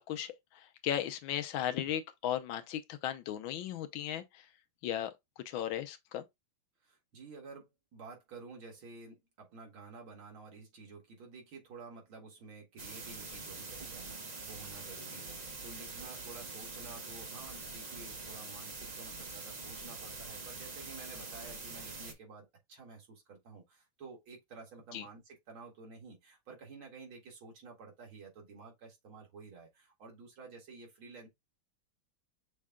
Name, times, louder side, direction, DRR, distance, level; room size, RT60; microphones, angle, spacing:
voice 1, 0.0-4.5 4.8-5.1 5.4-6.3 24.9-25.0, left 11 dB, 80° left, 1.4 m, -36 dB
voice 2, 6.8-31.3, right 4 dB, 85° right, 2.5 m, -51 dB
sound 1, 12.8-22.1, right 3 dB, 60° right, 0.4 m, -44 dB
6.4 x 2.3 x 3.6 m
omnidirectional pair, 2.2 m